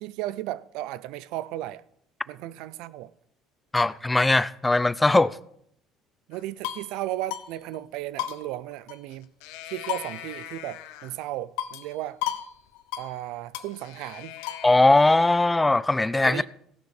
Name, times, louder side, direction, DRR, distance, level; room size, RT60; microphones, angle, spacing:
voice 1, 0.0-1.8 2.3-3.1 6.3-9.3 9.7-12.2 13.0-14.4 16.2-16.5, right 14 dB, 75° right, 0.4 m, -35 dB
voice 2, 3.7-5.4 14.6-16.4, left 2 dB, 10° left, 0.3 m, -20 dB
sound 1, 6.3-6.9 7.3-7.5 7.7-7.8 8.2-9.1 9.4-11.1 11.6-11.9 12.2-12.5 12.7-13.1 13.5-14.8, left 12 dB, 85° left, 0.9 m, -35 dB
16.0 x 6.4 x 4.8 m
cardioid pair, 115°, 0 cm